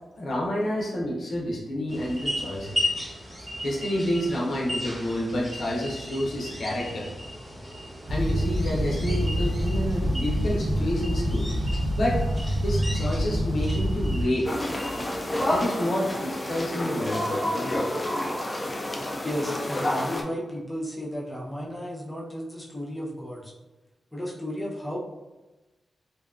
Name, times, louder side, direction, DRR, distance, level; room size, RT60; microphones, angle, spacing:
voice 1, 0.2-2.9 3.6-7.1 8.1-11.5 12.0-12.2 12.6-14.5 15.5-17.4, left 1 dB, 65° left, -3 dB, 0.6 m, -29 dB
sound 1, 1.9-15.6, left 1 dB, 20° right, 1.0 m, -36 dB
sound 2, 8.1-14.3, equal, 75° right, 0.5 m, -26 dB
sound 3, 14.5-20.2, left 1 dB, 20° left, 0.3 m, -29 dB
voice 2, 19.2-23.5 24.1-25.0, equal, 5° left, -6 dB, 0.7 m, -33 dB
2.6 x 2.3 x 2.4 m, 1.1 s
wide cardioid pair, 110°, 0 cm